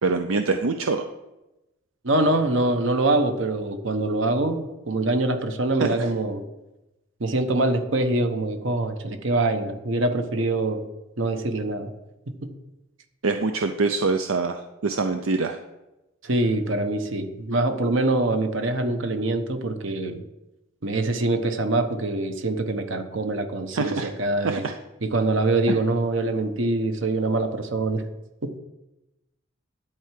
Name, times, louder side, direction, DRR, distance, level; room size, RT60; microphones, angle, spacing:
voice 1, 0.0-1.1 5.8-6.1 13.2-15.6 23.7-24.1 24.4-24.7 25.7-25.8, right 3 dB, 85° right, 7 dB, 0.6 m, -25 dB
voice 2, 2.0-6.4 7.2-10.8 11.2-11.9 12.3-12.5 16.2-20.2 20.8-24.6 25.0-28.0 28.4-28.6, right 2 dB, 65° right, 7 dB, 1.1 m, -24 dB
11.0 x 4.7 x 7.6 m, 0.98 s
head